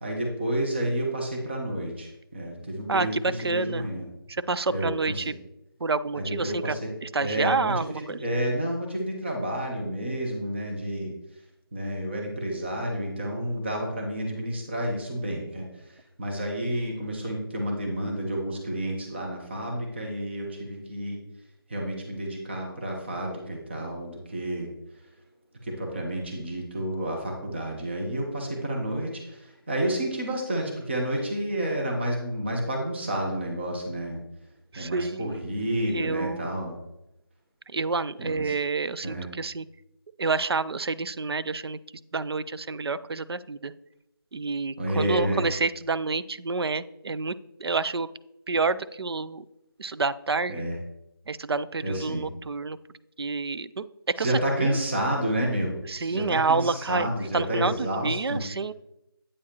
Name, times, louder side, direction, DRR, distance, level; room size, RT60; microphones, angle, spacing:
voice 1, 0.0-4.0 4.7-4.9 5.1-5.4 6.1-6.9 7.2-11.1 11.7-15.7 16.2-21.2 21.7-24.7 25.6-34.2 34.8-36.7 38.2-38.5 39.0-39.3 44.8-45.4 50.5-50.8 51.8-52.2 54.2-58.4, right 1 dB, 25° right, 1 dB, 1.0 m, -30 dB
voice 2, 2.9-3.9 4.3-5.3 5.8-6.7 7.0-8.2 34.7-35.4 35.8-36.4 37.7-39.7 40.2-41.8 42.1-43.7 44.3-48.1 48.5-49.5 49.8-50.6 51.3-52.8 53.2-54.8 55.9-58.7, right 4 dB, 80° right, 15 dB, 0.4 m, -28 dB
8.4 x 4.7 x 2.9 m, 0.86 s
figure-of-eight pair, 170°, 13 cm